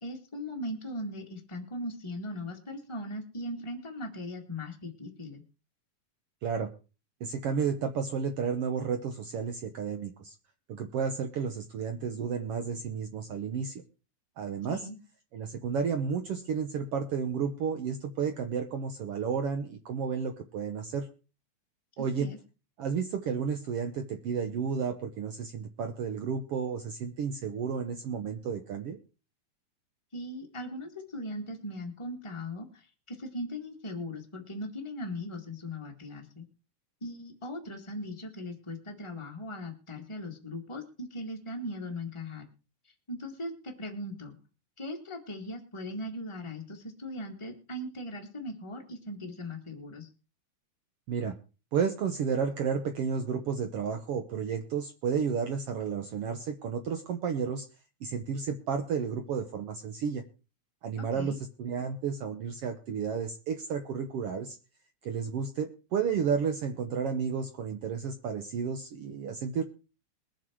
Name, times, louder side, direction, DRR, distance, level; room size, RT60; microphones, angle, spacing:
voice 1, 0.0-5.4 14.7-15.0 22.0-22.4 30.1-36.5 37.0-42.5 43.1-44.3 44.8-50.1 61.0-61.4, left 1 dB, 15° left, 2 dB, 0.9 m, -39 dB
voice 2, 7.2-10.3 10.7-13.8 14.4-14.8 15.3-21.1 22.0-22.3 22.8-29.0 51.1-51.3 51.7-57.7 58.0-60.2 60.8-64.6 65.0-69.6, right 6 dB, 80° right, 6 dB, 1.3 m, -32 dB
22.0 x 7.5 x 4.6 m, 0.33 s
omnidirectional pair, 4.1 m